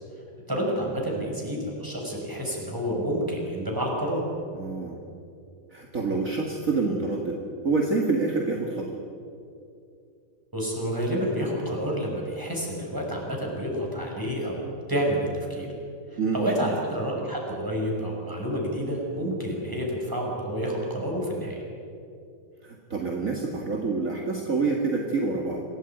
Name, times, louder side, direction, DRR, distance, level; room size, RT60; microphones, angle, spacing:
voice 1, 0.5-4.2 10.5-15.7 16.1-21.6, equal, 10° right, -2 dB, 6.5 m, -29 dB
voice 2, 4.5-5.0 5.7-7.4 7.6-8.9 16.2-16.4 22.6-25.6, right 3 dB, 45° right, 0 dB, 2.5 m, -27 dB
27.0 x 17.5 x 9.4 m, 2.5 s
omnidirectional pair, 2.0 m